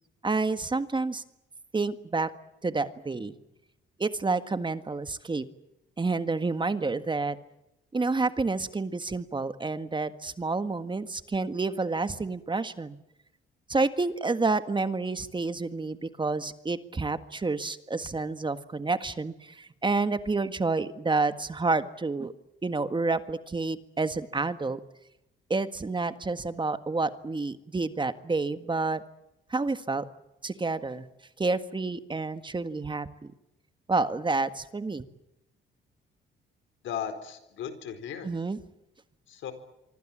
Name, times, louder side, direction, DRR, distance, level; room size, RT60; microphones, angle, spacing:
voice 1, 0.2-1.2 1.7-2.3 2.6-3.3 4.0-5.4 6.0-7.4 7.9-13.0 13.7-22.3 22.6-24.8 25.5-29.0 29.5-30.0 30.4-31.1 31.4-33.3 33.9-35.0 38.2-38.6, right 3 dB, 25° right, 11 dB, 1.7 m, -29 dB
voice 2, 36.8-38.3 39.3-39.5, left 8 dB, 75° left, 10 dB, 4.5 m, -36 dB
25.5 x 25.0 x 7.5 m, 0.88 s
cardioid pair, 90°, 20 cm